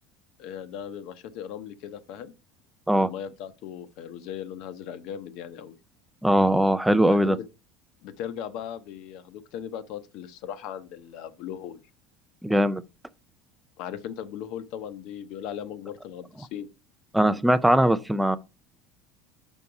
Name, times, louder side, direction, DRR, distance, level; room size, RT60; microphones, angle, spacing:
voice 1, 0.4-2.3 3.0-5.8 7.1-7.4 8.0-11.8 13.8-16.7, left 9 dB, 55° left, 0.7 m, -38 dB
voice 2, 6.2-7.4 12.4-12.8 17.1-18.4, right 1 dB, 5° right, 0.4 m, -20 dB
5.7 x 5.4 x 4.7 m
cardioid pair, 160°, 0 cm